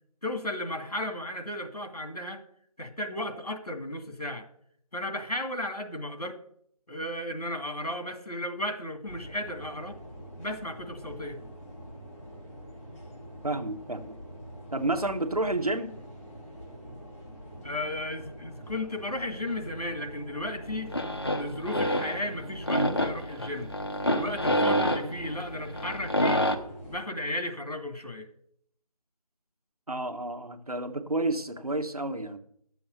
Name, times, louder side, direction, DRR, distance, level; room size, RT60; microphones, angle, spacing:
voice 1, 0.2-2.4 2.8-4.4 4.9-6.4 6.9-10.0 10.4-11.4 17.6-20.9 21.3-23.7 24.1-26.4 26.9-28.3, left 1 dB, 70° left, 5 dB, 2.4 m, -34 dB
sound 1, 9.1-27.0, equal, 20° left, 2.4 m, -45 dB
voice 2, 13.4-14.1 14.7-15.9 29.9-32.4, right 2 dB, 70° right, 8 dB, 1.5 m, -30 dB
sound 2, 20.6-26.5, equal, 40° left, 1.0 m, -28 dB
11.0 x 7.1 x 6.8 m, 0.68 s
figure-of-eight pair, 170°, 20 cm